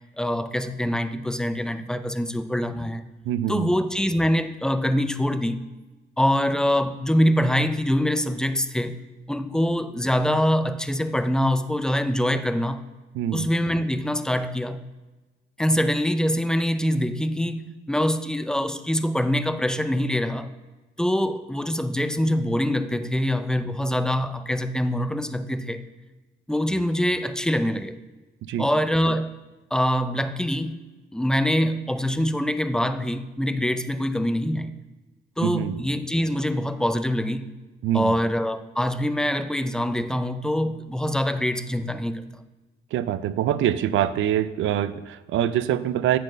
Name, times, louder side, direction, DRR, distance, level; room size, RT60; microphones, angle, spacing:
voice 1, 0.2-3.0 3.5-5.6 6.2-8.9 9.3-12.8 13.3-14.8 15.6-20.5 21.0-25.8 26.5-28.0 28.6-29.4 29.7-30.8 31.1-34.7 35.4-37.5 37.9-42.4, equal, 5° left, 10 dB, 0.5 m, -24 dB
voice 2, 3.2-3.7 13.1-13.5 28.4-28.7 35.4-35.8 37.8-38.1 42.9-46.2, right 11 dB, 80° right, 14 dB, 0.5 m, -24 dB
8.4 x 4.2 x 6.3 m, 1.2 s
cardioid pair, 90°, 20 cm